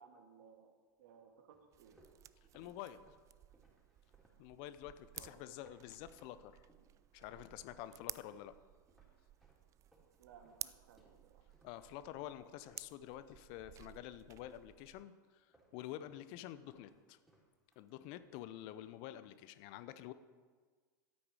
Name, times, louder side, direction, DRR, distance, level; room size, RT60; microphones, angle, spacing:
voice 1, 0.0-2.0 5.1-5.4 10.2-11.5, right 6 dB, 60° right, 5 dB, 1.7 m, -61 dB
sound 1, 1.5-6.4 6.7-7.5 7.8-14.0 14.3-15.1 15.5-16.3 16.5-18.4 18.7-19.1, right 1 dB, 5° right, 3.3 m, -70 dB
sound 2, 1.7-15.0, right 12 dB, 30° right, 0.3 m, -55 dB
voice 2, 2.5-3.0 4.4-6.7 7.1-8.5 11.6-15.5 15.7-17.2 17.8-20.1, left 12 dB, 50° left, 13 dB, 0.7 m, -49 dB
13.0 x 8.7 x 4.9 m, 1.5 s
figure-of-eight pair, 90°, 11 cm